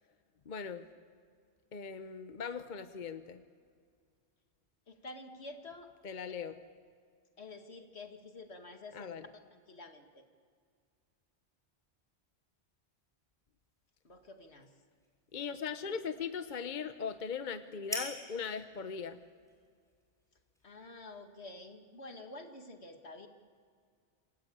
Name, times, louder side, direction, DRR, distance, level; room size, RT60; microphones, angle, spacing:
voice 1, 0.5-0.9 1.7-3.4 6.0-6.6 8.9-9.3 15.3-19.3, left 6 dB, 50° left, 10 dB, 1.0 m, -39 dB
voice 2, 4.9-5.9 7.4-9.2 9.5-10.2 14.0-14.7 20.6-23.3, left 2 dB, 75° left, 5 dB, 2.3 m, -49 dB
sound 1, 13.6-21.3, equal, 5° left, 6.3 m, -50 dB
27.5 x 19.0 x 8.7 m, 2.1 s
omnidirectional pair, 1.1 m